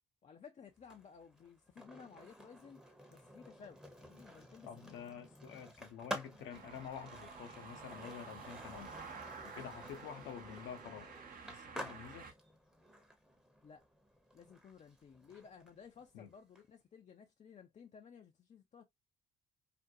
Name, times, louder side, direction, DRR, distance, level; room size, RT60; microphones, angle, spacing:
voice 1, 0.2-2.8 3.1-5.0 13.6-13.8 14.3-18.8, left 6 dB, 35° left, 0.5 m, -56 dB
Skateboard, 0.8-16.6, equal, 5° right, 0.8 m, -51 dB
voice 2, 4.7-9.0 9.4-11.1 11.5-12.3 16.1-16.3, left 8 dB, 70° left, 0.7 m, -49 dB
sound 1, 6.5-12.3, right 5 dB, 45° right, 0.7 m, -51 dB
2.5 x 2.2 x 2.6 m
hypercardioid pair, 50°, 20 cm